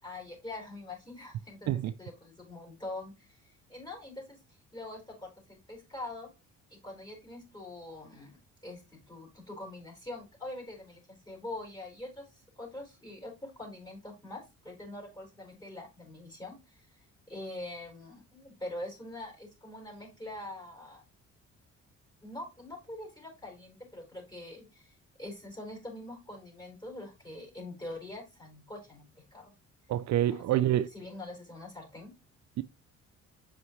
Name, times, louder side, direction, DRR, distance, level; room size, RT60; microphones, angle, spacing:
voice 1, 0.0-1.7 2.0-6.3 6.7-8.4 8.6-16.9 17.3-21.0 22.2-29.5 30.2-30.6 30.9-32.1, left 2 dB, 15° left, 4.5 m, -44 dB
voice 2, 29.9-30.9 32.6-32.7, right 12 dB, 65° right, 0.4 m, -27 dB
7.8 x 5.6 x 3.1 m
cardioid pair, 90°, 30 cm